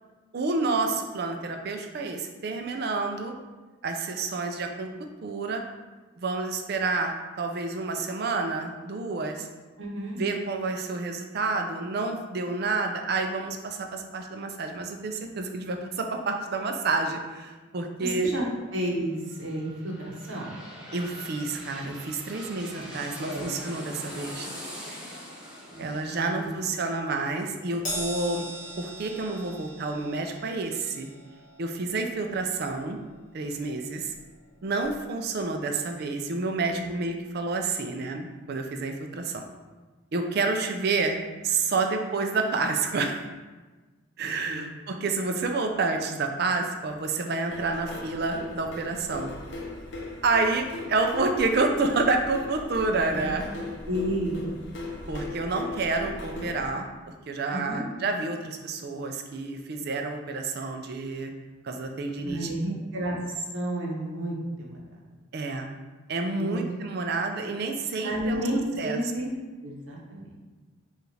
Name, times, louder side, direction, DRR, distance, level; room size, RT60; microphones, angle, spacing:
voice 1, 0.3-3.4 3.8-4.9 5.2-5.6 6.2-9.5 10.2-18.3 20.9-24.5 25.8-28.5 28.8-31.1 31.6-33.0 33.3-34.1 34.6-39.4 40.1-43.3 44.2-49.3 50.2-53.4 55.1-61.3 61.6-62.5 65.3-65.7 66.1-68.4 68.8-69.0, right 3 dB, 55° right, 4 dB, 0.4 m, -29 dB
voice 2, 9.8-10.2 18.0-18.4 18.7-20.5 23.2-23.5 25.7-25.8 26.2-26.6 36.6-36.9 44.2-44.7 52.9-53.5 53.9-54.5 57.5-57.9 62.2-64.8 66.3-66.6 68.0-69.3 69.6-70.3, right 1 dB, 70° right, -2 dB, 0.9 m, -31 dB
sound 1, 19.0-28.7 29.1-29.2, equal, 5° right, 0.6 m, -43 dB
Crash cymbal, 27.9-34.5 34.8-35.0 36.1-36.2, equal, 40° left, 1.4 m, -40 dB
sound 2, 47.5-56.7, left 2 dB, 65° left, 0.7 m, -38 dB
4.8 x 2.5 x 3.2 m, 1.3 s
head